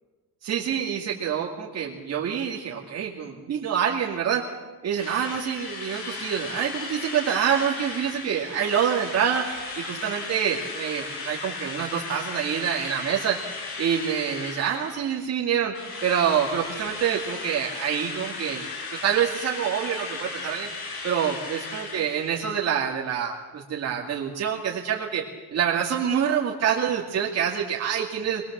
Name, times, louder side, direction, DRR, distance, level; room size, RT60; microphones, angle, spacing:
voice 1, 0.4-4.4 4.8-13.4 13.8-15.7 16.0-18.7 19.0-20.7 21.0-25.2 25.5-28.4, right 8 dB, 45° right, -2 dB, 2.4 m, -26 dB
Drill, 5.0-15.4 15.7-22.6, left 3 dB, 85° left, 6.1 m, -36 dB
25.5 x 21.5 x 7.5 m, 1.3 s
cardioid pair, 175°, 37 cm